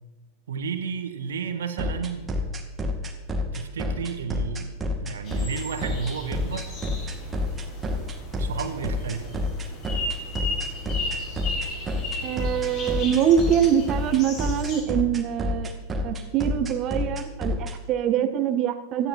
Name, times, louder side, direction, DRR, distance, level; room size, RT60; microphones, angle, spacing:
voice 1, 0.5-2.4 3.4-6.7 8.4-9.4, right 6 dB, 65° right, 9 dB, 1.6 m, -32 dB
sound 1, 1.8-17.7, left 2 dB, 20° right, 2.2 m, -28 dB
sound 2, 5.3-14.8, left 2 dB, 35° left, 5.6 m, -35 dB
voice 2, 12.2-15.7 16.0-19.1, right 9 dB, 35° right, 10 dB, 1.5 m, -24 dB
17.0 x 13.0 x 4.4 m, 1.2 s
figure-of-eight pair, 90°, 0 cm